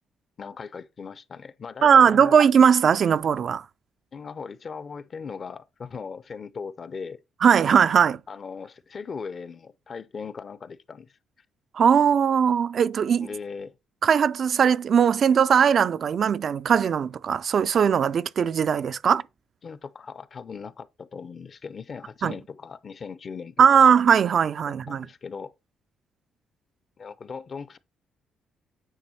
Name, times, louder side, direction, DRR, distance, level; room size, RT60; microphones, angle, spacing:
voice 1, 0.4-2.4 4.1-7.2 8.3-11.2 13.2-13.7 19.6-23.9 24.7-25.5 27.0-27.8, left 5 dB, 45° left, 0.5 m, -38 dB
voice 2, 1.8-3.6 7.4-8.2 11.7-13.3 14.0-19.2 22.2-22.3 23.6-25.1, right 7 dB, 55° right, 0.3 m, -19 dB
9.0 x 3.4 x 4.2 m
cardioid pair, 90°, 0 cm